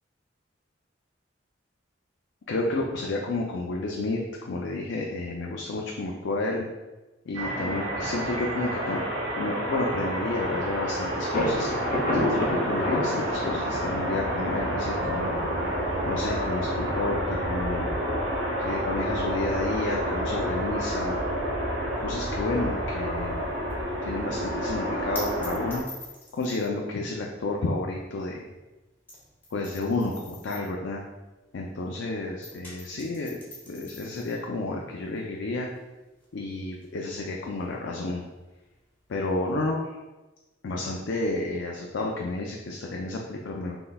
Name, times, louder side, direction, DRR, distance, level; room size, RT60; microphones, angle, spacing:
voice 1, 2.5-6.7 7.3-9.0 9.4-11.7 12.1-15.3 16.0-17.9 18.6-21.2 22.0-23.5 24.0-25.8 26.3-28.4 29.5-31.0 31.5-33.3 33.7-35.7 36.3-38.2 39.1-39.8 40.6-43.8, left 2 dB, 75° left, 0 dB, 0.4 m, -31 dB
sound 1, 7.3-25.8, equal, 85° right, 0.8 m, -29 dB
Thunder, 11.3-17.0, left 1 dB, 45° left, 0.7 m, -31 dB
sound 2, 23.1-32.0 32.3-39.5, left 1 dB, 10° left, 1.0 m, -46 dB
3.9 x 3.8 x 2.2 m, 1.1 s
head